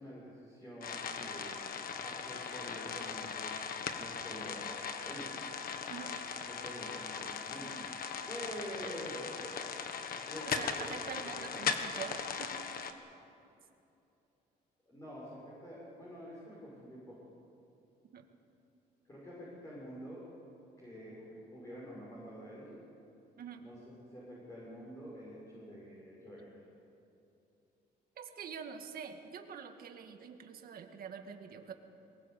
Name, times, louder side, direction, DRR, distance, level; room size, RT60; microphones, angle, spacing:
voice 1, 0.0-1.6 2.0-3.5 4.0-5.3 6.5-9.4 10.1-11.7 14.9-17.2 19.1-20.2 20.8-22.8 23.6-23.8 24.1-26.5, equal, 20° left, -6 dB, 6.5 m, -47 dB
sound 1, 0.8-12.9, left 6 dB, 60° left, 1.5 m, -39 dB
voice 2, 10.5-12.5 18.1-18.3 23.4-23.6 28.2-31.7, right 7 dB, 60° right, 5 dB, 2.0 m, -45 dB
22.5 x 20.0 x 8.4 m, 2.8 s
cardioid pair, 135°, 17 cm